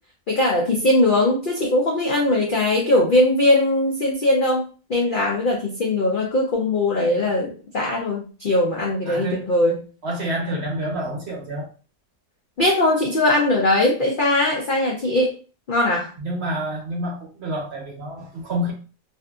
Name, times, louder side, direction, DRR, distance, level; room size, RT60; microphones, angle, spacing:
voice 1, 0.3-9.8 12.6-15.4 15.7-16.1, left 1 dB, 75° left, -2 dB, 0.4 m, -20 dB
voice 2, 9.1-9.5 10.0-11.7 16.2-18.7, right 1 dB, 55° right, -1 dB, 0.9 m, -28 dB
2.6 x 2.5 x 2.3 m, 0.36 s
omnidirectional pair, 1.6 m